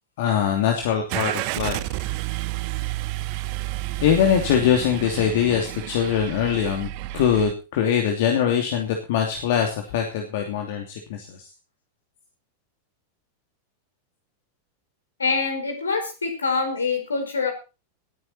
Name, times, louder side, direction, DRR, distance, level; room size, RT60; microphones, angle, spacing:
voice 1, 0.2-2.0 4.0-6.9 7.1-11.4, left 8 dB, 50° left, 3 dB, 2.8 m, -22 dB
Car / Engine starting, 1.1-7.5, right 18 dB, 45° right, 0.9 m, -30 dB
voice 2, 15.2-17.5, left 4 dB, 75° left, 5 dB, 5.1 m, -25 dB
20.0 x 9.4 x 4.4 m, 0.32 s
figure-of-eight pair, 90°, 0 cm